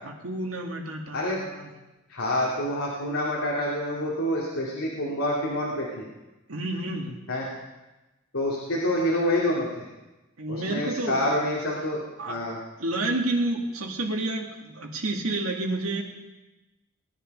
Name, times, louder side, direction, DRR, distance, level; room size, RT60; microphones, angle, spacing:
voice 1, 0.0-1.7 6.5-7.2 10.4-11.5 12.2-12.4 12.8-16.0, right 2 dB, 90° right, 0 dB, 2.1 m, -30 dB
voice 2, 1.1-1.5 2.1-6.1 7.3-7.5 8.3-9.9 10.5-12.6, left 1 dB, 75° left, -4 dB, 2.6 m, -27 dB
19.0 x 10.5 x 5.4 m, 1.1 s
head